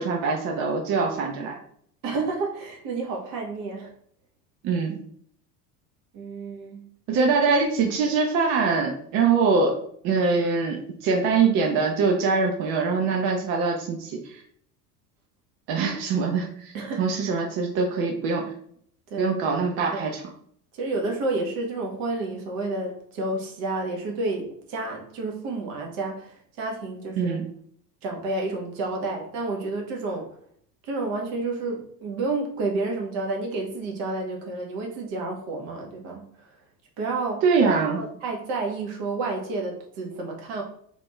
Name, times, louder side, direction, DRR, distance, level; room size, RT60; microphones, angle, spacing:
voice 1, 0.0-1.5 4.6-5.0 7.1-9.7 10.0-14.4 15.7-16.7 17.0-18.4 19.2-20.2 27.2-27.5 37.4-38.0, right 4 dB, 30° right, 1 dB, 0.4 m, -23 dB
voice 2, 2.0-3.9 6.1-7.3 16.7-17.4 19.1-19.4 19.9-20.0 20.7-27.4 28.0-30.3 30.8-36.3 37.0-37.4 38.0-40.6, right 3 dB, 50° right, 1 dB, 1.0 m, -30 dB
3.3 x 2.5 x 3.1 m, 0.65 s
figure-of-eight pair, 70°, 50 cm